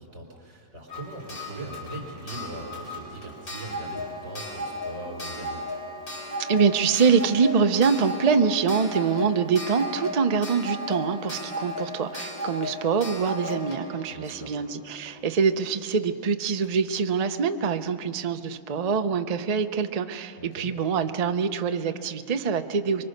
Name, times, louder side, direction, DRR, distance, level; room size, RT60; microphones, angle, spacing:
voice 1, 0.0-5.6 14.1-14.5 20.4-20.7, right 2 dB, 50° right, 1 dB, 4.5 m, -40 dB
Clock, 0.9-15.5 16.6-16.7 17.0-17.1, left 1 dB, 55° left, 4.6 m, -36 dB
voice 2, 6.5-23.0, right 6 dB, 75° right, 8 dB, 0.3 m, -24 dB
24.5 x 24.5 x 6.6 m, 2.5 s
omnidirectional pair, 1.9 m